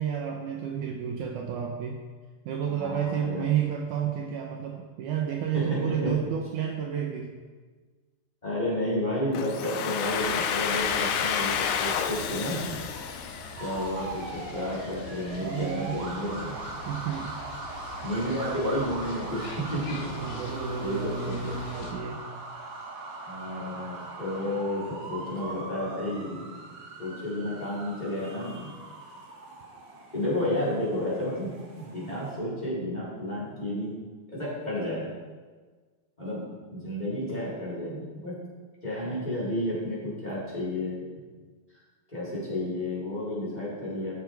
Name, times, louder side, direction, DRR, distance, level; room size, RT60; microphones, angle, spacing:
voice 1, 0.0-2.0 2.4-7.3 15.4-16.0 16.9-17.3 20.1-22.3, right 8 dB, 90° right, 1 dB, 1.7 m, -31 dB
voice 2, 2.7-3.4 5.5-6.1 8.4-12.6 13.6-16.6 18.0-20.0 20.8-21.9 23.2-26.4 27.0-28.7 30.1-33.9 34.3-35.1 36.2-36.4 36.7-38.3 38.8-41.0 42.1-44.1, left 1 dB, 10° left, -8 dB, 3.5 m, -31 dB
Domestic sounds home sounds, 9.3-14.1, left 7 dB, 90° left, 2.6 m, -30 dB
sound 1, 10.0-21.9, left 2 dB, 60° left, 2.3 m, -44 dB
sound 2, 13.6-32.4, right 3 dB, 60° right, 2.3 m, -41 dB
13.0 x 6.9 x 4.6 m, 1.4 s
omnidirectional pair, 4.6 m